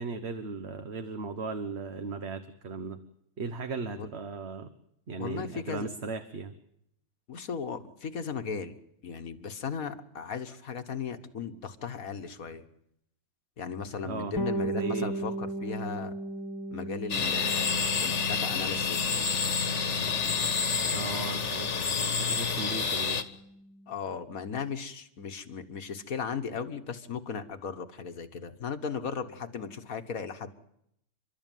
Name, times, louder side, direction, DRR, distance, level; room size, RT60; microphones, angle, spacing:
voice 1, 0.0-3.0 3.4-4.7 5.1-6.5 14.0-14.3 14.6-15.1 20.9-21.7 22.3-23.2, right 4 dB, 50° right, 8 dB, 1.4 m, -36 dB
voice 2, 5.2-5.9 7.3-8.8 9.0-12.6 13.6-16.1 16.7-19.5 20.0-20.5 21.1-21.4 23.9-30.5, left 6 dB, 75° left, 8 dB, 1.7 m, -37 dB
Bass guitar, 14.4-24.0, right 1 dB, 15° left, 1.7 m, -38 dB
sound 1, 17.1-23.2, left 5 dB, 55° left, 1.7 m, -29 dB
29.5 x 12.5 x 9.2 m, 0.75 s
omnidirectional pair, 1.5 m